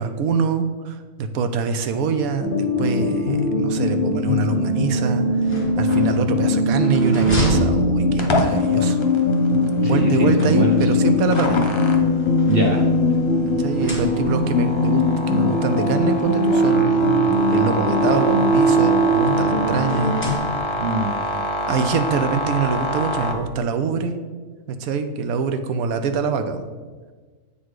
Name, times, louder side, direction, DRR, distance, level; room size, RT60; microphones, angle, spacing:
voice 1, 0.0-5.3 5.8-9.0 9.8-11.7 13.4-20.2 21.7-24.2 24.7-26.6, right 5 dB, 90° right, 9 dB, 1.1 m, -24 dB
sound 1, 2.4-20.4, left 1 dB, 70° left, 1.1 m, -20 dB
sound 2, 5.3-8.6 9.9-11.1 11.9-13.3 13.6-14.6 15.5-15.6 15.9-16.0 17.2-18.6 19.8-21.0, left 1 dB, 10° left, 1.6 m, -32 dB
sound 3, 8.2-23.3, left 1 dB, 35° left, 0.4 m, -28 dB
voice 2, 9.8-10.8 12.5-12.8 20.8-21.2, right 2 dB, 50° right, 1 dB, 0.8 m, -23 dB
8.0 x 4.2 x 4.7 m, 1.4 s
omnidirectional pair, 1.5 m